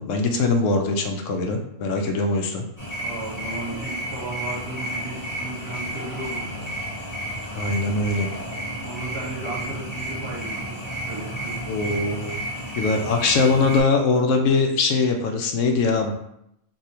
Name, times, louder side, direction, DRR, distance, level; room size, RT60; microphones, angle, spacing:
voice 1, 0.0-2.6 7.5-8.3 11.7-12.4 12.8-16.1, left 3 dB, 75° left, 4 dB, 0.9 m, -22 dB
sound 1, 2.8-13.8, right 1 dB, 30° left, 1.1 m, -32 dB
voice 2, 3.0-6.5 8.8-11.9, right 2 dB, 55° right, -2 dB, 1.0 m, -35 dB
4.9 x 2.6 x 2.8 m, 0.77 s
omnidirectional pair, 1.4 m